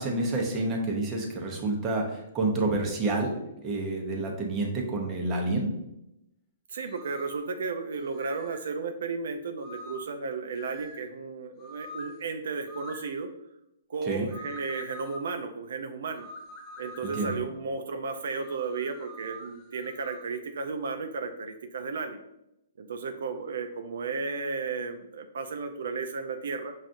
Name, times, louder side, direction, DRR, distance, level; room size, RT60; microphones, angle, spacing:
voice 1, 0.0-3.3 3.6-5.7 14.1-14.3 17.2-17.4, right 2 dB, 20° right, 0 dB, 0.7 m, -28 dB
voice 2, 6.7-13.3 13.9-16.3 16.8-22.2 22.8-26.7, right 4 dB, 70° right, 6 dB, 0.4 m, -34 dB
sound 1, 6.9-7.5 8.2-8.7 9.6-10.2 10.6-11.1 11.6-12.2 12.7-13.1 14.3-15.3 16.2-17.5 18.4-20.3, equal, 20° left, 0.4 m, -44 dB
5.6 x 2.4 x 2.5 m, 0.86 s
hypercardioid pair, 155°, 0 cm